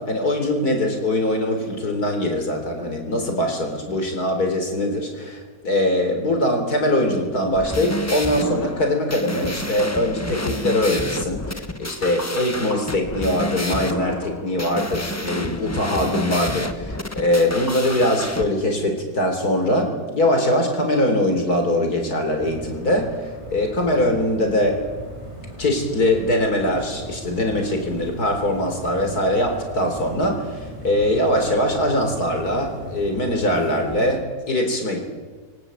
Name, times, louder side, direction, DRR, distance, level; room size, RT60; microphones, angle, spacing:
voice 1, 0.0-24.8 25.6-35.0, left 1 dB, 90° left, 4 dB, 4.4 m, -22 dB
sound 1, 7.5-18.4, left 1 dB, 10° left, 1.2 m, -29 dB
sound 2, 22.4-34.2, right 1 dB, 20° right, 4.2 m, -38 dB
23.5 x 19.5 x 8.4 m, 1.4 s
omnidirectional pair, 1.6 m